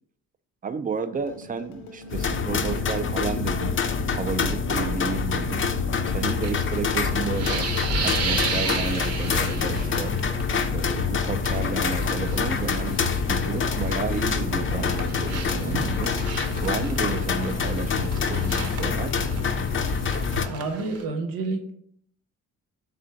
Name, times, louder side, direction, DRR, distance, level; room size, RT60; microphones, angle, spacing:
voice 1, 0.6-3.7 4.1-5.6 6.1-7.7 8.0-10.1 10.7-13.0 13.3-16.2 16.6-19.2, right 5 dB, 25° right, 10 dB, 0.3 m, -32 dB
sound 1, 1.1-19.5, left 3 dB, 85° left, 0.7 m, -43 dB
sound 2, 2.1-20.5, left 5 dB, 35° left, 0.5 m, -26 dB
sound 3, 6.4-10.4 10.7-11.0 11.4-14.0 14.3-21.0, right 4 dB, 45° right, 0.7 m, -34 dB
voice 2, 20.4-21.7, right 3 dB, 75° right, 5 dB, 0.8 m, -29 dB
3.7 x 2.5 x 4.4 m, 0.63 s
cardioid pair, 75°, 34 cm